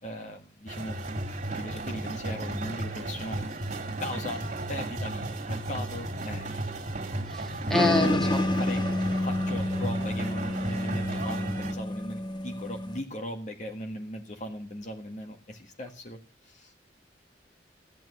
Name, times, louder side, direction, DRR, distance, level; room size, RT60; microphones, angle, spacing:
voice 1, 0.0-1.0 1.5-3.4 4.0-4.4 4.7-7.1 8.0-8.3 8.6-8.8 9.2-16.7, left 1 dB, 45° left, 3 dB, 1.7 m, -39 dB
sound 1, 0.7-11.7, right 2 dB, 45° right, 2.5 m, -34 dB
voice 2, 7.3-8.4, left 1 dB, 5° left, 3 dB, 2.1 m, -26 dB
sound 2, 7.7-13.0, left 1 dB, 25° left, 0.9 m, -29 dB
14.0 x 8.9 x 6.2 m, 0.34 s
head